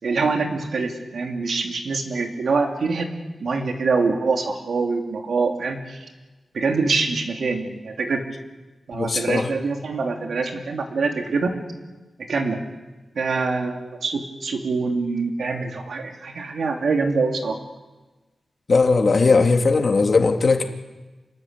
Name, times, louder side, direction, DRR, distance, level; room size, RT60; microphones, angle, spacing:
voice 1, 0.0-3.1 3.4-6.0 6.5-8.2 8.9-11.5 12.3-12.6 13.1-17.6, right 4 dB, 85° right, 3 dB, 3.2 m, -24 dB
voice 2, 8.9-9.5 18.7-20.6, left 4 dB, 55° left, 4 dB, 2.3 m, -18 dB
27.5 x 20.0 x 8.4 m, 1.2 s
wide cardioid pair, 95°, 0 cm